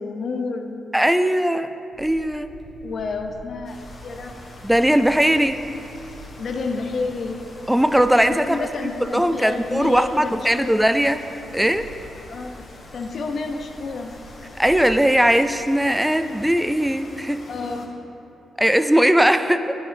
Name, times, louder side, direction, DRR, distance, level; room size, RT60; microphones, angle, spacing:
voice 1, 0.0-0.9 2.8-4.3 6.4-7.4 8.3-10.8 12.3-14.1 17.5-18.0, left 4 dB, 60° left, 5 dB, 0.5 m, -30 dB
voice 2, 0.9-1.7 2.0-2.5 4.6-5.6 7.7-8.6 9.1-11.2 11.5-11.9 14.6-17.4 18.6-19.8, equal, 5° right, 10 dB, 0.4 m, -19 dB
sound 1, 1.9-15.1, right 1 dB, 35° right, 1.4 m, -46 dB
sound 2, 3.6-17.9, left 1 dB, 45° left, 1.3 m, -45 dB
9.1 x 8.7 x 3.4 m, 2.8 s
cardioid pair, 60°, 0 cm